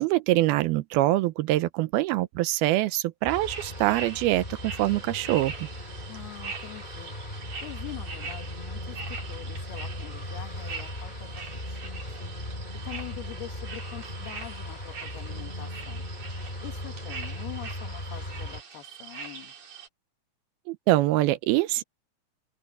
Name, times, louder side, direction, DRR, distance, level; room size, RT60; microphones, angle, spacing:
voice 1, 0.0-5.5 20.7-21.8, right 16 dB, 80° right, 2.6 m, -24 dB
sound 1, 3.2-18.6, left 1 dB, 10° left, 4.6 m, -38 dB
sound 2, 3.3-19.9, right 5 dB, 50° right, 4.8 m, -42 dB
voice 2, 6.1-7.1 7.6-12.3 12.8-16.0 16.6-19.5, left 14 dB, 75° left, 3.8 m, -44 dB
open air
omnidirectional pair, 4.5 m